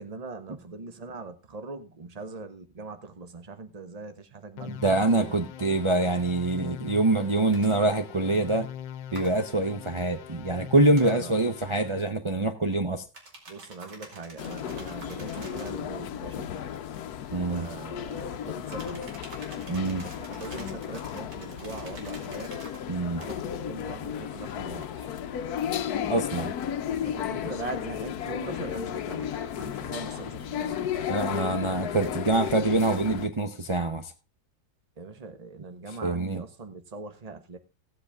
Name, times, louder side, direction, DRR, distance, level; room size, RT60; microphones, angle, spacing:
voice 1, 0.0-5.3 11.0-11.3 13.5-16.5 17.4-19.0 19.9-22.6 23.2-25.1 27.0-30.8 35.0-37.6, right 3 dB, 25° right, 1.1 m, -41 dB
sound 1, 4.6-12.1, left 9 dB, 85° left, 1.4 m, -42 dB
voice 2, 4.7-8.7 9.1-13.0 17.3-17.7 19.7-20.0 22.9-23.2 26.0-26.5 31.1-34.1 36.0-36.4, right 2 dB, 40° right, 0.4 m, -25 dB
sound 2, 7.5-7.7 9.1-9.3 10.9-11.2 13.1-15.8 18.7-22.8 23.2-23.4, right 2 dB, 70° right, 3.2 m, -48 dB
sound 3, 14.4-33.3, left 9 dB, 65° left, 1.2 m, -34 dB
16.0 x 8.0 x 3.5 m
omnidirectional pair, 1.9 m